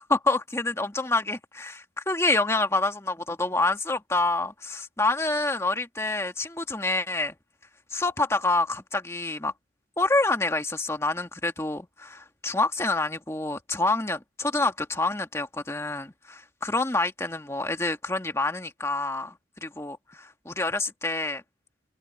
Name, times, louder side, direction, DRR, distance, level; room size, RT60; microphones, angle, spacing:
voice 1, 0.0-7.4 7.9-9.5 10.0-21.4, left 2 dB, 15° left, 1.7 m, -27 dB
open air
head